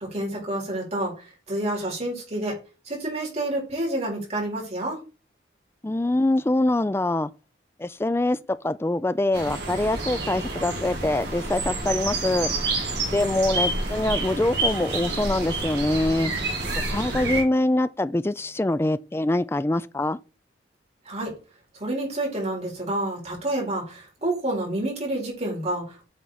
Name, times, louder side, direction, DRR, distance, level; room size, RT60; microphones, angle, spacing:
voice 1, 0.1-2.6 2.9-5.0 21.1-21.4 21.8-26.1, right 1 dB, 35° right, 4.1 m, -29 dB
voice 2, 5.8-7.3 7.8-12.5 13.1-16.3 16.9-20.2, left 1 dB, 15° left, 0.3 m, -24 dB
sound 1, 9.3-17.4, right 2 dB, 65° right, 3.5 m, -28 dB
8.3 x 4.4 x 4.1 m
head